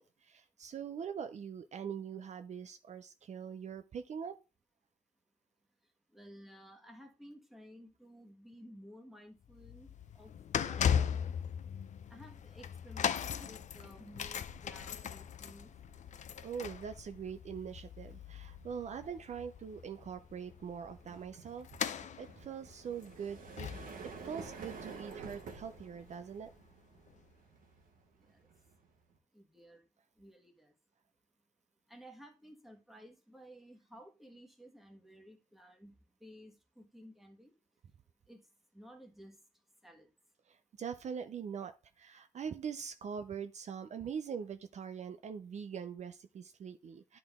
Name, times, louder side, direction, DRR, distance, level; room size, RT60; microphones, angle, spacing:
voice 1, 0.0-4.4 16.4-23.7 24.0-26.5 40.5-47.2, right 7 dB, 55° right, 0.5 m, -43 dB
voice 2, 6.1-11.0 12.1-15.7 28.3-28.5 29.3-29.8 30.2-30.7 31.9-37.5 38.3-38.5 38.7-39.4 39.8-40.1, equal, ahead, 1.4 m, -55 dB
sound 1, 9.5-25.8 26.1-26.3 27.1-27.2, left 8 dB, 55° left, 0.5 m, -39 dB
sound 2, 11.8-12.1 12.4-29.2, right 4 dB, 80° right, 1.3 m, -53 dB
10.5 x 3.9 x 3.5 m
cardioid pair, 115°, 14 cm